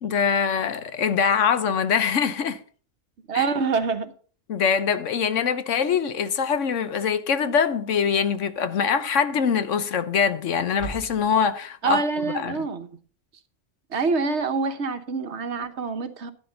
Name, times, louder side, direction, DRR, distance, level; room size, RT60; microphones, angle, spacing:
voice 1, 0.0-2.6 3.3-3.5 4.5-12.5, left 6 dB, 85° left, 1.3 m, -23 dB
voice 2, 3.3-4.1 5.9-6.0 11.8-13.0 13.9-16.3, right 4 dB, 70° right, 1.3 m, -26 dB
sound 1, 8.0-8.4 8.8-8.9 10.7-11.6, right 2 dB, 70° left, 3.2 m, -39 dB
12.0 x 9.6 x 4.0 m
omnidirectional pair, 1.2 m